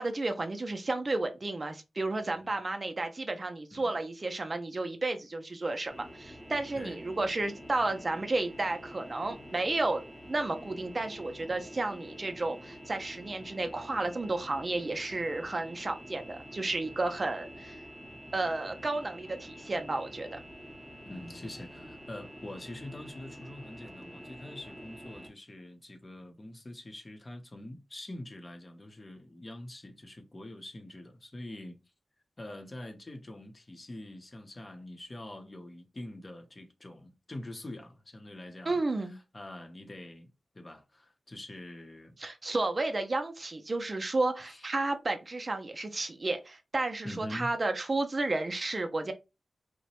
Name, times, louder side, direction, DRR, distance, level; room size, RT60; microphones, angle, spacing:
voice 1, 0.0-10.0 10.3-17.8 18.3-20.4 38.7-39.2 42.2-49.1, right 2 dB, 45° right, 0.5 m, -32 dB
voice 2, 2.2-2.5 3.7-4.0 6.8-7.0 21.0-31.8 32.4-40.3 40.5-42.2 44.4-44.7 47.0-47.5, left 1 dB, 40° left, 0.7 m, -45 dB
sound 1, 5.9-25.3, equal, 10° left, 0.7 m, -48 dB
2.9 x 2.1 x 2.8 m
cardioid pair, 50°, 0 cm